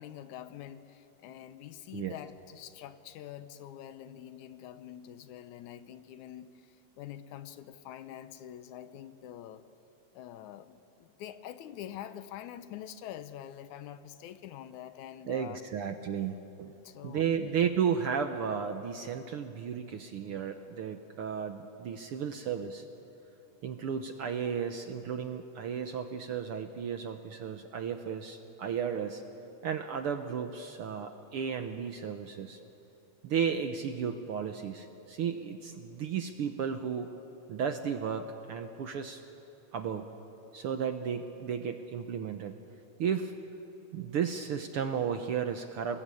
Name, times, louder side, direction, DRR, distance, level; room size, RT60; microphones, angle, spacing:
voice 1, 0.0-9.6 10.1-15.6 16.8-17.5, left 11 dB, 80° left, 12 dB, 2.3 m, -45 dB
voice 2, 15.3-16.7 17.0-22.8 23.6-29.2 29.6-32.6 33.2-37.1 37.5-39.2 39.7-40.1 40.5-42.6 43.0-43.3 43.9-46.0, right 7 dB, 65° right, 7 dB, 1.4 m, -34 dB
29.5 x 20.0 x 8.5 m, 2.8 s
omnidirectional pair, 3.4 m